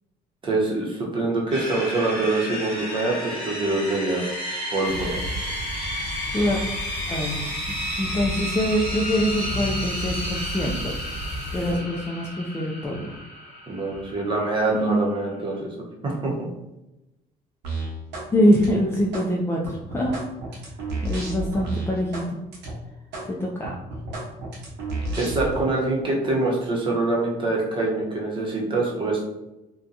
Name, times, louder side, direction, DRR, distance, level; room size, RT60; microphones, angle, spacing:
voice 1, 0.4-4.3 4.7-5.2 11.7-11.8 13.7-15.7 16.0-16.5 25.2-29.3, right 2 dB, 30° right, -3 dB, 0.8 m, -25 dB
sound 1, 1.5-15.5, equal, ahead, 1.3 m, -32 dB
sound 2, 4.8-11.7, left 1 dB, 75° left, 0.5 m, -34 dB
voice 2, 7.1-7.5 8.0-10.9 11.5-13.1 14.7-15.1 18.3-20.1 21.0-22.2 23.3-23.7, equal, 15° left, -3 dB, 0.3 m, -24 dB
sound 3, 17.6-18.3 18.5-19.3 19.6-22.3 22.5-22.7 23.1-23.3 23.6-25.6, right 2 dB, 90° right, 0.8 m, -31 dB
2.7 x 2.2 x 2.5 m, 0.95 s
cardioid pair, 110°, 17 cm